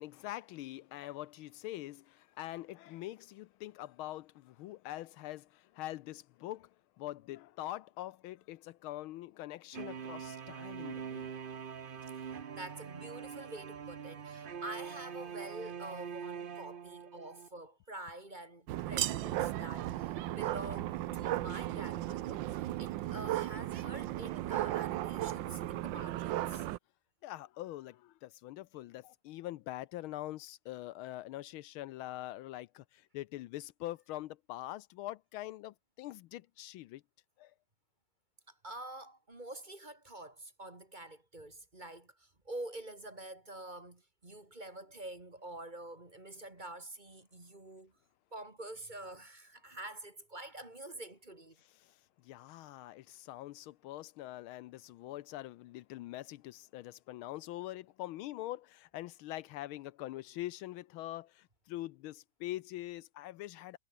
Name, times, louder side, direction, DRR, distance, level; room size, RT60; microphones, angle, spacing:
voice 1, 0.0-6.7 7.0-11.3 27.2-37.0 37.4-37.5 51.8-51.9 52.2-63.8, left 15 dB, 80° left, 1.5 m, -44 dB
sound 1, 9.7-17.5, right 7 dB, 85° right, 0.4 m, -44 dB
voice 2, 12.5-26.7 38.5-47.9 48.3-51.6, right 1 dB, 20° right, 2.6 m, -47 dB
sound 2, 18.7-26.8, right 14 dB, 70° right, 1.3 m, -35 dB
omnidirectional pair, 2.3 m